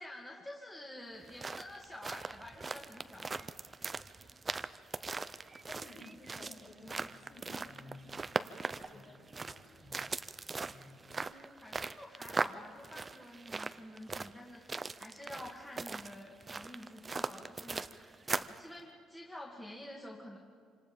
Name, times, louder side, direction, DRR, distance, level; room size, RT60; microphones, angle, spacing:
voice 1, 0.0-3.3 11.0-20.4, left 1 dB, 10° left, -2 dB, 2.1 m, -49 dB
sound 1, 1.1-18.6, right 4 dB, 20° right, 0.6 m, -40 dB
voice 2, 5.6-10.0 10.6-10.9, left 2 dB, 55° left, -2 dB, 6.9 m, -54 dB
27.0 x 26.0 x 5.2 m, 2.1 s
cardioid pair, 130°, 0 cm